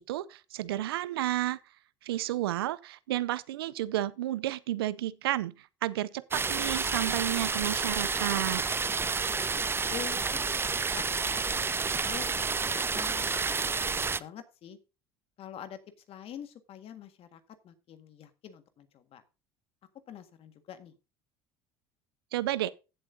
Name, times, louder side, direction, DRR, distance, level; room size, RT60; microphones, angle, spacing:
voice 1, 0.0-1.6 2.0-8.6 22.3-22.7, right 14 dB, 90° right, 0.5 m, -31 dB
sound 1, 6.3-14.2, right 4 dB, 20° right, 0.5 m, -30 dB
voice 2, 9.3-13.8 14.2-14.8 15.4-15.8 16.1-19.2 20.1-21.0, left 9 dB, 55° left, 1.7 m, -46 dB
15.5 x 7.7 x 2.7 m
hypercardioid pair, 75°, 12 cm